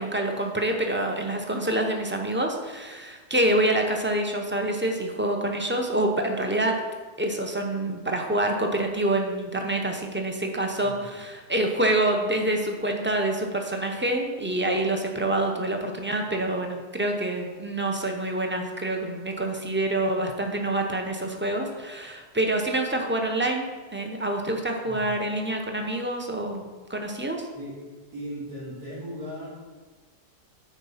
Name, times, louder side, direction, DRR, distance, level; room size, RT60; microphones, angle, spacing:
voice 1, 0.0-6.7 7.2-27.5, right 1 dB, 15° right, 2 dB, 0.4 m, -27 dB
voice 2, 10.8-11.2 24.9-25.1 27.5-27.7 28.1-29.5, equal, 70° right, -8 dB, 3.3 m, -37 dB
10.5 x 4.4 x 5.7 m, 1.3 s
omnidirectional pair, 1.7 m